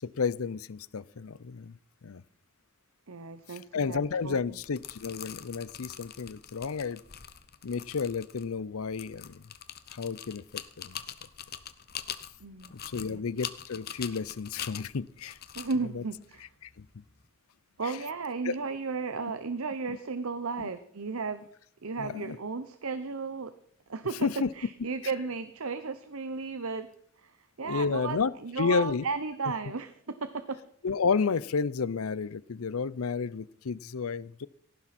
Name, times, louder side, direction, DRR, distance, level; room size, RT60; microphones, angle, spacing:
voice 1, 0.0-2.2 3.5-7.0 7.6-9.4 9.9-11.0 12.7-15.4 15.9-16.0 16.6-16.9 17.8-18.0 18.4-18.6 19.9-20.0 20.6-20.7 22.0-22.4 24.2-24.5 27.6-29.0 30.8-34.5, left 5 dB, 85° left, 20 dB, 0.6 m, -31 dB
voice 2, 3.1-4.4 12.4-12.7 13.1-13.2 15.5-16.5 17.8-21.4 21.8-23.5 23.9-24.3 24.6-26.9 27.2-30.6, right 4 dB, 80° right, 11 dB, 0.9 m, -34 dB
sound 1, 4.5-17.2, left 9 dB, 45° left, 0.9 m, -44 dB
17.5 x 15.0 x 4.3 m, 0.67 s
head